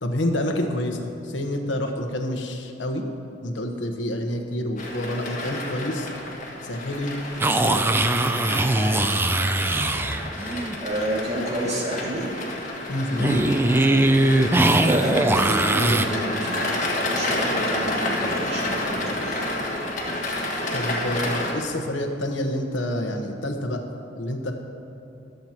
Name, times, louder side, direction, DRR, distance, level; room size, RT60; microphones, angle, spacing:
voice 1, 0.0-3.0 3.4-6.1 6.6-7.1 7.6-7.8 12.9-13.5 20.7-23.8 24.2-24.5, left 1 dB, 85° left, 3 dB, 1.1 m, -28 dB
sound 1, 4.8-21.5, left 1 dB, 45° left, 1.9 m, -30 dB
sound 2, 7.4-10.7 13.2-16.0, right 2 dB, 10° right, 0.4 m, -21 dB
voice 2, 10.8-12.3 14.8-19.4, right 1 dB, 35° right, -4 dB, 2.4 m, -29 dB
23.5 x 7.9 x 3.0 m, 2.8 s
head